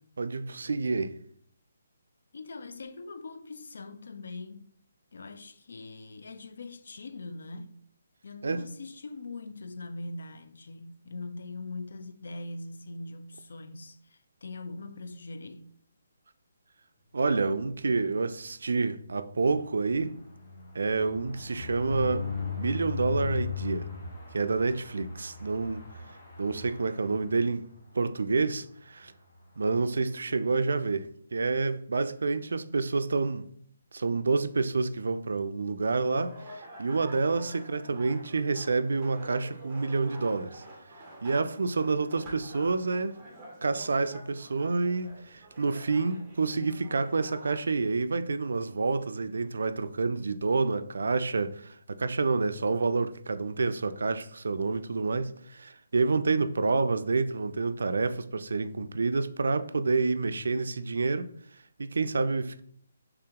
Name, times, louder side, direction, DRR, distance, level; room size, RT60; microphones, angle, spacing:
voice 1, 0.2-1.2 8.4-8.7 17.1-20.2 20.7-22.3 22.6-23.9 24.3-25.9 26.4-27.7 27.9-29.1 29.6-33.5 33.9-40.6 41.2-43.2 43.6-61.3 61.8-62.6, right 3 dB, 75° right, 0.3 m, -28 dB
voice 2, 2.3-4.7 5.1-7.8 8.2-15.7, left 3 dB, 60° left, 0.4 m, -42 dB
sound 1, 19.0-27.8 28.2-28.4 28.7-28.8 29.0-29.3, left 6 dB, 30° left, 1.1 m, -38 dB
sound 2, 35.8-47.6, right 1 dB, 10° right, 0.6 m, -48 dB
3.4 x 2.9 x 3.5 m
hypercardioid pair, 175°, 0 cm